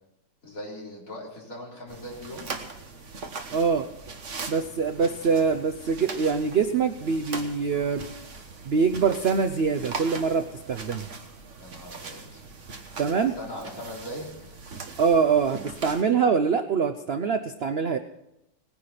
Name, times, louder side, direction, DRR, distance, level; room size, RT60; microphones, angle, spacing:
voice 1, 0.4-2.5 11.6-12.4 13.4-14.5, left 1 dB, 45° left, -4 dB, 4.5 m, -39 dB
sound 1, 1.9-16.0, right 4 dB, 45° right, 1.5 m, -40 dB
voice 2, 3.5-3.9 4.5-8.1 8.6-11.1 13.0-13.3 15.0-18.0, right 5 dB, 65° right, 8 dB, 0.6 m, -24 dB
19.0 x 10.5 x 5.9 m, 0.87 s
omnidirectional pair, 2.0 m